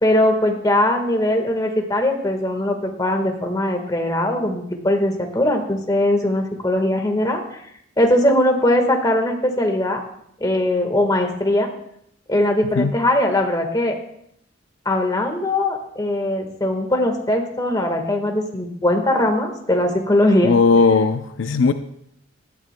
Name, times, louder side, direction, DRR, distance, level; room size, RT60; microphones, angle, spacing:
voice 1, 0.0-7.4 8.0-10.0 10.4-11.7 12.3-13.9 14.8-20.5, left 1 dB, 20° left, 3 dB, 1.5 m, -20 dB
voice 2, 20.4-21.7, left 4 dB, 75° left, 9 dB, 0.5 m, -17 dB
18.5 x 12.5 x 2.2 m, 0.73 s
head